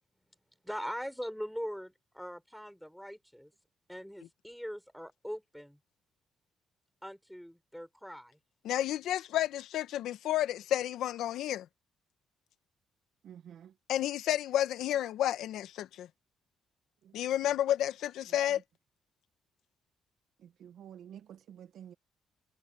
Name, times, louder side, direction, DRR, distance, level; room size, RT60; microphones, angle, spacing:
voice 1, 0.6-3.5 3.9-5.8 7.0-8.4, equal, ahead, 5.0 m, -41 dB
voice 2, 8.6-11.7 13.9-16.1 17.1-18.6, left 12 dB, 80° left, 1.1 m, -31 dB
voice 3, 13.2-13.7 17.0-17.1 18.3-18.6 20.4-21.9, right 9 dB, 70° right, 1.1 m, -51 dB
cardioid pair, 90°, 0 cm